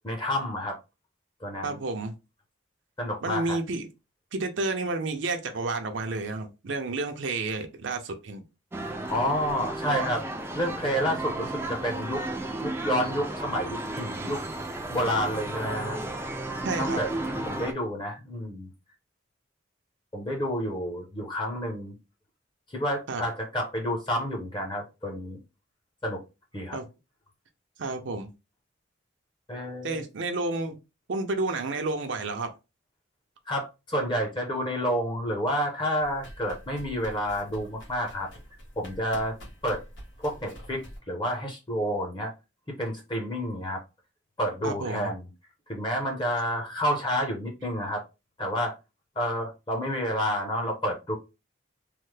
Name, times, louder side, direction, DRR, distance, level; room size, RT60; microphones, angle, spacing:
voice 1, 0.0-0.8 1.4-1.8 3.0-3.6 9.1-10.2 10.5-12.2 12.6-14.4 14.9-16.0 16.8-17.1 17.4-18.7 20.1-22.0 22.7-25.4 26.0-26.2 26.5-26.8 29.5-30.0 33.5-38.3 38.8-39.4 39.6-39.8 40.2-42.3 42.8-43.8 44.4-45.3 45.7-48.0 48.4-48.7 49.2-51.2, equal, 25° left, 0.6 m, -29 dB
voice 2, 1.6-2.1 3.2-3.9 4.3-8.4 16.6-17.0 23.1-23.2 26.7-26.9 27.8-28.3 29.8-30.8 31.1-32.5 44.6-45.1, right 3 dB, 75° right, 0.5 m, -30 dB
sound 1, 8.7-17.7, right 2 dB, 10° right, 0.3 m, -33 dB
sound 2, 36.0-41.0, equal, 70° left, 1.2 m, -46 dB
3.2 x 2.0 x 3.1 m
head